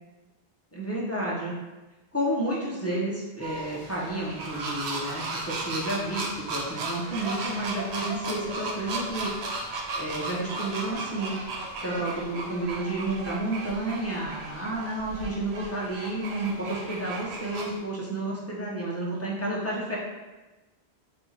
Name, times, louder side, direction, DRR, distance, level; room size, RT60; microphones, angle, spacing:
voice 1, 0.7-1.5 2.1-9.3 10.0-11.3 11.8-20.0, right 1 dB, 15° left, -5 dB, 0.9 m, -31 dB
sound 1, 3.4-17.8, right 2 dB, 75° right, 0.9 m, -35 dB
4.3 x 2.9 x 4.0 m, 1.1 s
omnidirectional pair, 1.1 m